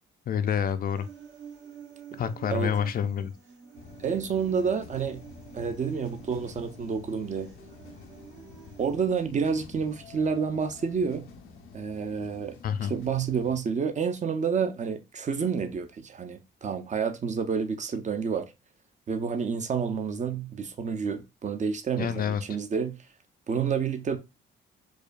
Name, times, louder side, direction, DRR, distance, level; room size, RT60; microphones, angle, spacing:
voice 1, 0.3-1.1 2.2-3.3 12.6-12.9 22.0-22.4, left 8 dB, 45° left, 0.4 m, -28 dB
Human voice, 1.0-8.9, right 8 dB, 65° right, 1.0 m, -49 dB
sound 1, 3.7-13.6, left 5 dB, 90° left, 0.6 m, -49 dB
voice 2, 4.0-5.2 5.5-7.5 8.8-11.3 11.7-12.6 12.9-18.5 19.1-22.9 23.5-24.2, right 6 dB, 40° right, 0.5 m, -29 dB
4.8 x 2.2 x 2.4 m
cardioid pair, 90°, 20 cm